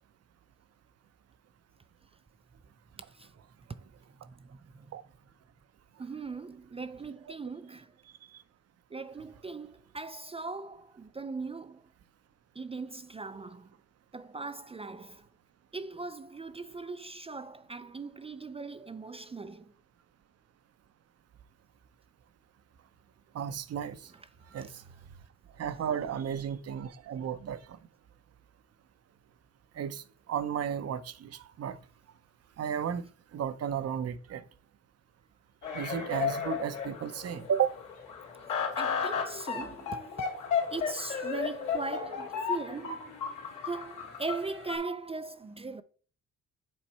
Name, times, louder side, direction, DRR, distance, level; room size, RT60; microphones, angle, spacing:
voice 1, 4.3-4.9 6.0-7.9 8.9-11.8 12.6-13.7 14.1-15.3 15.7-19.7 38.8-40.3 40.7-43.1 43.6-45.8, right 3 dB, 20° right, 0.4 m, -39 dB
voice 2, 23.3-24.0 24.5-24.7 25.6-27.6 29.8-30.0 30.3-31.8 32.6-33.1 33.3-34.4 35.7-37.8, right 8 dB, 55° right, 0.7 m, -33 dB
sound 1, 35.6-44.8, left 6 dB, 85° left, 2.4 m, -34 dB
7.5 x 4.4 x 4.2 m
cardioid pair, 90°, 30 cm